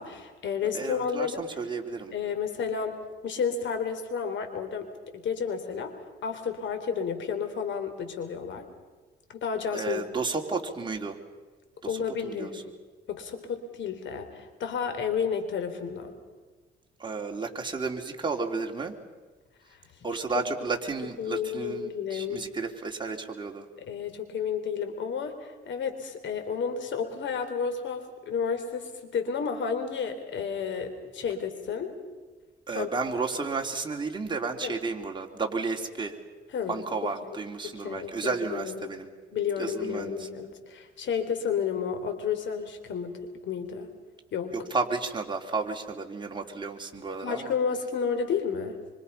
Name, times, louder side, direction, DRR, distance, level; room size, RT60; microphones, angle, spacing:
voice 1, 0.0-1.5 2.1-3.0 3.2-5.9 6.2-8.6 9.3-10.1 11.9-12.6 13.1-16.1 19.7-19.8 21.2-22.5 23.9-31.9 32.7-32.9 33.3-33.4 34.6-34.8 36.5-36.8 37.2-38.9 39.3-43.9 44.3-44.6 47.2-48.8, left 6 dB, 70° left, 7 dB, 3.7 m, -31 dB
voice 2, 0.7-2.1 9.7-11.2 12.2-12.6 17.0-18.9 20.0-23.6 32.7-36.1 36.7-39.1 39.6-40.2 44.5-47.5, right 4 dB, 25° right, 2 dB, 3.1 m, -32 dB
25.5 x 25.0 x 5.6 m, 1.4 s
cardioid pair, 90°, 20 cm